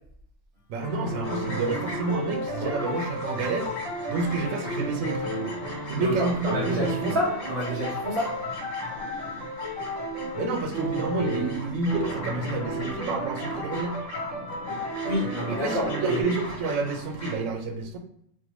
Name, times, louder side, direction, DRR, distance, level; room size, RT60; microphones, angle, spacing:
voice 1, 0.7-3.7 4.1-5.3 5.9-7.2 10.3-14.0 15.5-18.0, right 3 dB, 85° right, 5 dB, 0.9 m, -29 dB
sound 1, 0.8-6.1 6.4-16.2, right 1 dB, 65° right, 1.4 m, -33 dB
sound 2, 1.2-17.4, left 1 dB, 85° left, 1.3 m, -40 dB
voice 2, 6.0-8.4 15.0-16.2, equal, 45° right, -9 dB, 1.2 m, -29 dB
3.3 x 2.0 x 3.0 m, 0.71 s
omnidirectional pair, 1.3 m